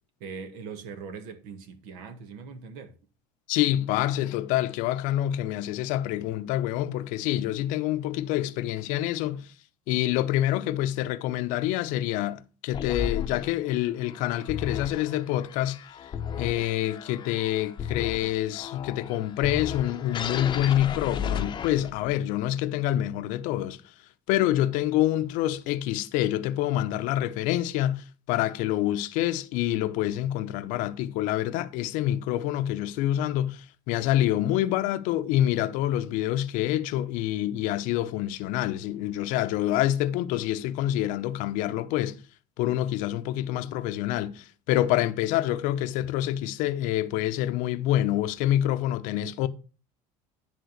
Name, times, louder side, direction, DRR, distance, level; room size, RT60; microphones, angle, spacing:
voice 1, 0.2-2.9 40.5-40.6, right 5 dB, 75° right, 1.7 m, -41 dB
voice 2, 3.5-9.5 9.9-15.8 16.4-23.8 24.3-42.2 42.6-49.5, left 13 dB, 65° left, 0.7 m, -27 dB
sound 1, 12.7-22.2, left 8 dB, 35° left, 0.8 m, -35 dB
10.5 x 3.7 x 6.3 m
supercardioid pair, 120°, 14 cm